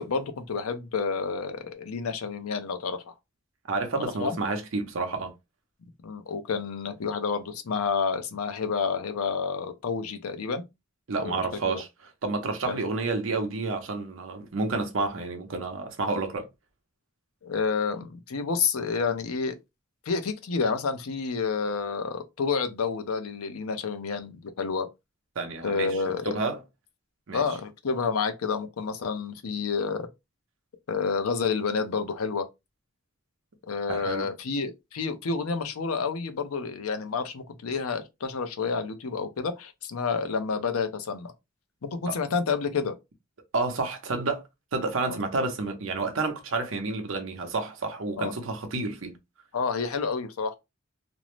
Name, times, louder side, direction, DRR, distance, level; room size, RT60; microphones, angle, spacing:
voice 1, 0.0-3.1 4.0-4.4 6.0-10.6 11.2-11.4 11.7-11.8 12.7-12.8 17.4-19.5 20.1-24.9 25.6-26.4 27.3-30.1 30.9-32.5 33.7-41.3 41.8-42.9 45.1-45.2 48.2-48.3 49.5-50.5, left 5 dB, 85° left, 0.5 m, -29 dB
voice 2, 3.7-5.3 11.1-11.9 12.2-16.5 25.4-26.0 26.2-26.6 27.3-27.4 33.9-34.3 42.1-42.2 43.5-44.4 44.7-49.2, right 3 dB, 60° right, 0.6 m, -30 dB
2.5 x 2.0 x 3.0 m
head